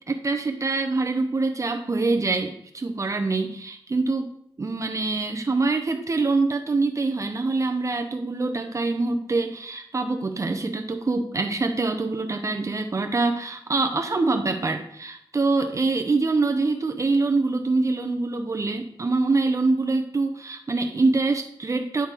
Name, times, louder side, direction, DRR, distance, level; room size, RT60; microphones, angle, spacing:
voice 1, 0.1-4.3 4.6-22.1, right 3 dB, 35° right, 5 dB, 0.6 m, -25 dB
9.7 x 3.6 x 4.4 m, 0.71 s
wide cardioid pair, 120°, 9 cm